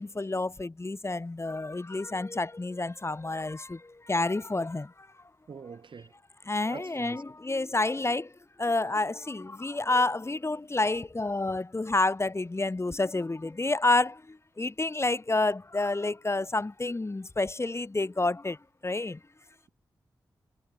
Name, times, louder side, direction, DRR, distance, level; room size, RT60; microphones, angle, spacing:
voice 1, 0.0-5.1 6.4-8.3 8.6-18.6 18.8-19.2, left 2 dB, 30° left, 1.3 m, -29 dB
voice 2, 5.5-6.1 6.7-7.2, right 5 dB, 70° right, 5.7 m, -44 dB
cardioid pair, 40°, 9 cm